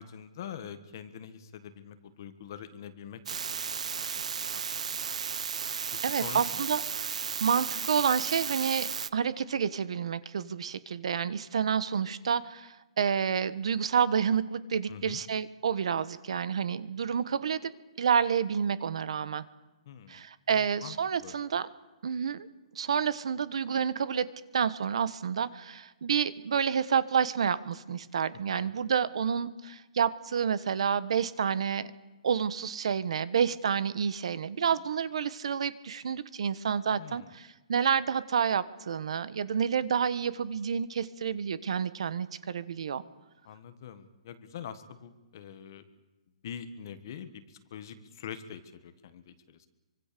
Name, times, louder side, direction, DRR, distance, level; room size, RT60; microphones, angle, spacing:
voice 1, 0.0-3.2 3.5-4.1 4.4-4.9 6.2-6.6 14.9-15.2 19.9-20.2 20.5-20.9 21.2-21.3 28.5-28.7 37.0-37.3 43.4-45.8 46.4-49.7, left 8 dB, 35° left, 11 dB, 1.5 m, -44 dB
sound 1, 3.3-9.1, right 7 dB, 75° right, 0.8 m, -34 dB
voice 2, 6.0-17.7 18.0-19.4 20.1-21.7 22.0-22.5 22.7-24.3 24.5-31.9 32.2-43.0, right 7 dB, 55° right, 16 dB, 1.4 m, -29 dB
26.0 x 25.0 x 6.9 m, 1.1 s
hypercardioid pair, 180°, 4 cm